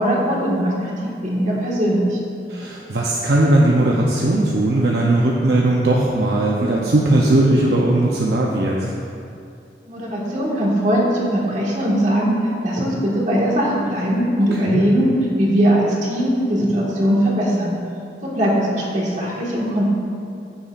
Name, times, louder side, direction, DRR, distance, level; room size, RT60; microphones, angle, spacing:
voice 1, 0.0-2.2 9.9-12.4 12.6-15.1 15.4-17.7 18.2-19.9, equal, 45° right, -5 dB, 1.8 m, -20 dB
voice 2, 2.5-8.9 14.5-14.8, right 1 dB, 65° right, -3 dB, 0.7 m, -18 dB
15.0 x 7.0 x 2.5 m, 2.5 s
head